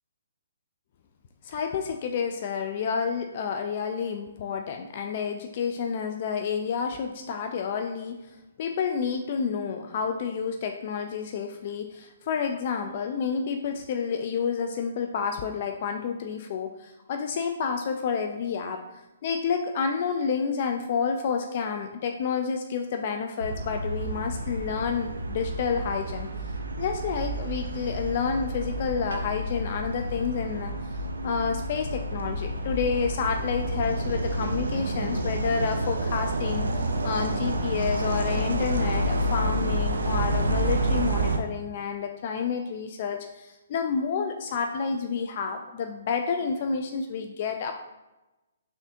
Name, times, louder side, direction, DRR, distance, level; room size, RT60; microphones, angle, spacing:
voice 1, 1.4-8.2 8.6-18.8 19.2-26.3 26.8-30.7 31.2-36.7 37.0-47.7, left 6 dB, 45° left, 5 dB, 0.3 m, -29 dB
sound 1, 23.4-41.4, right 1 dB, 85° right, 0.4 m, -29 dB
3.7 x 3.3 x 2.7 m, 1.0 s
hypercardioid pair, 145°, 0 cm